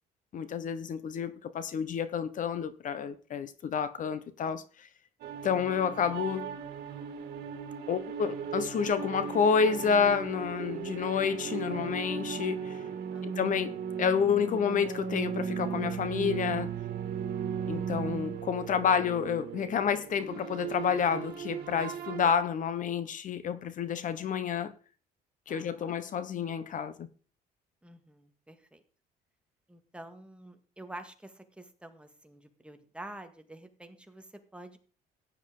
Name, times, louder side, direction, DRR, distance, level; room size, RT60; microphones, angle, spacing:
voice 1, 0.3-4.9 5.4-6.5 7.9-12.9 13.2-16.7 17.7-24.7 25.5-27.1, left 7 dB, 50° left, 1.0 m, -29 dB
sound 1, 5.2-22.3, right 7 dB, 70° right, 2.3 m, -37 dB
voice 2, 13.1-13.4 25.5-26.0 27.8-28.8 29.7-34.8, right 1 dB, 5° right, 1.8 m, -48 dB
15.0 x 9.9 x 3.8 m
cardioid pair, 110°, 17 cm